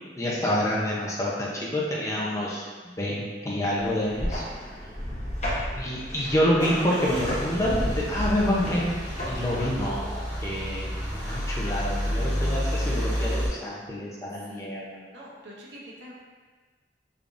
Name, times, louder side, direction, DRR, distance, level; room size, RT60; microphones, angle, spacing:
voice 1, 0.2-2.6 3.0-4.4 5.8-11.0 11.2-15.0, equal, 15° left, -5 dB, 0.6 m, -27 dB
sound 1, 3.8-9.9, equal, 40° left, 0.9 m, -33 dB
Car / Engine starting / Idling, 5.6-13.5, equal, 20° right, 1.5 m, -30 dB
voice 2, 14.4-14.7 15.1-16.1, equal, 85° right, -5 dB, 0.8 m, -46 dB
3.6 x 3.5 x 2.5 m, 1.4 s
head